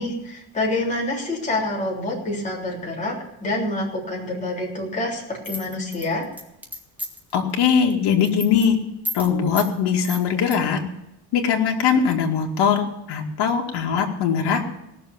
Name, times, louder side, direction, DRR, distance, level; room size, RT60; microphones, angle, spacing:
voice 1, 0.0-6.3, left 2 dB, 20° left, -3 dB, 3.4 m, -27 dB
sound 1, 5.4-7.3 7.7-7.9 8.2-8.7 9.0-9.3 9.6-9.7 10.0-10.6, left 1 dB, 5° right, 1.3 m, -32 dB
voice 2, 7.3-8.8 9.1-10.8 11.3-14.6, left 7 dB, 75° left, 1 dB, 2.2 m, -21 dB
17.5 x 6.9 x 7.1 m, 0.89 s
cardioid pair, 170°, 39 cm